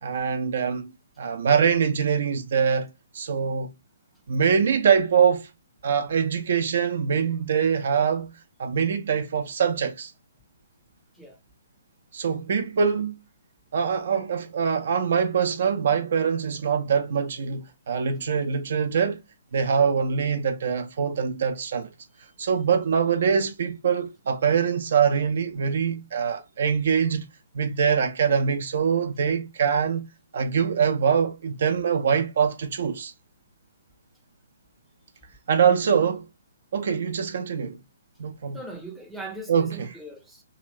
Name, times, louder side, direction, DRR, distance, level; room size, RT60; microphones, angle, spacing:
voice 1, 0.0-2.9 3.1-3.7 4.3-5.5 5.8-8.3 8.6-10.1 12.1-13.2 13.7-19.2 19.5-21.9 22.4-27.3 27.5-30.1 30.3-33.1 35.5-36.3 36.7-37.8 38.2-38.6 39.5-40.0, right 6 dB, 55° right, 0.7 m, -24 dB
voice 2, 38.5-40.4, right 2 dB, ahead, 0.6 m, -39 dB
2.9 x 2.5 x 3.1 m
figure-of-eight pair, 130°, 0 cm